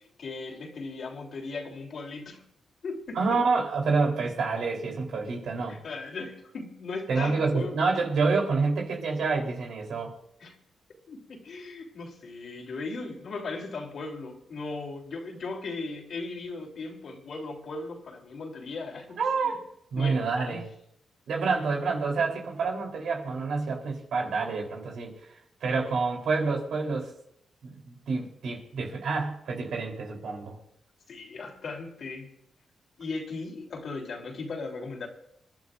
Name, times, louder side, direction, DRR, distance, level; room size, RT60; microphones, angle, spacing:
voice 1, 0.2-2.4 2.8-3.4 5.7-7.8 10.4-10.6 11.1-19.6 20.0-20.6 21.6-21.7 31.1-32.3 33.0-35.1, left 3 dB, 65° left, 0 dB, 3.4 m, -37 dB
voice 2, 3.1-5.8 7.1-10.2 19.2-19.6 19.9-20.7 21.3-25.1 25.6-27.1 27.6-30.6, right 4 dB, 80° right, 0 dB, 3.6 m, -28 dB
27.5 x 11.5 x 2.6 m, 0.74 s
cardioid pair, 90°, 0 cm